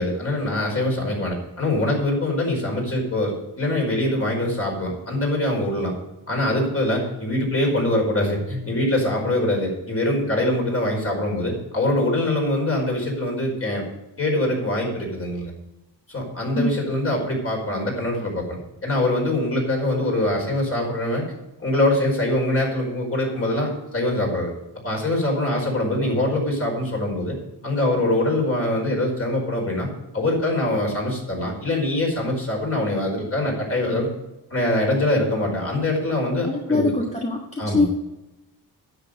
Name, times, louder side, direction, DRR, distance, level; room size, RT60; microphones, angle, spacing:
voice 1, 0.0-5.9 6.3-13.8 14.2-15.5 16.1-21.2 21.6-24.5 24.8-27.3 27.6-29.9 30.1-34.1 34.5-36.9 37.6-37.9, left 1 dB, 30° left, 0 dB, 5.0 m, -23 dB
voice 2, 36.5-37.9, left 2 dB, 15° left, 0 dB, 1.4 m, -23 dB
10.0 x 7.5 x 8.0 m, 0.97 s
cardioid pair, 100°, 44 cm